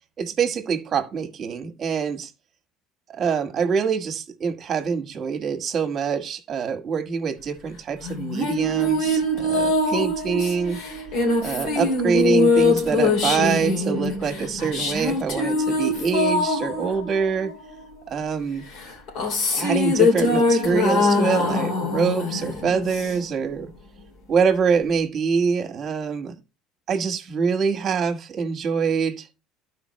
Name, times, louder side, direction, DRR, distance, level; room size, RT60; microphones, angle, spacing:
voice 1, 0.2-2.3 3.1-10.8 11.4-17.5 18.1-18.6 19.5-23.7 24.3-26.3 26.9-29.3, right 6 dB, 40° right, 1.4 m, -25 dB
sound 1, 8.0-17.9 18.7-23.4, left 2 dB, 70° left, 2.7 m, -23 dB
12.0 x 4.9 x 3.1 m
supercardioid pair, 95°, 0 cm